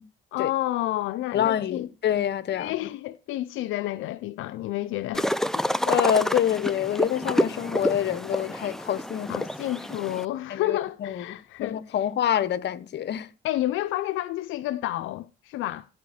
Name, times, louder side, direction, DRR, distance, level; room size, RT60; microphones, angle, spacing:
voice 1, 0.3-1.9 2.5-5.3 9.3-11.8 13.4-15.9, left 15 dB, 85° left, 0.5 m, -30 dB
voice 2, 1.3-2.8 5.9-9.5 10.5-13.3, left 10 dB, 60° left, 0.9 m, -26 dB
sound 1, 5.1-10.2, left 1 dB, ahead, 0.5 m, -28 dB
12.5 x 4.4 x 4.8 m
cardioid pair, 90°, 20 cm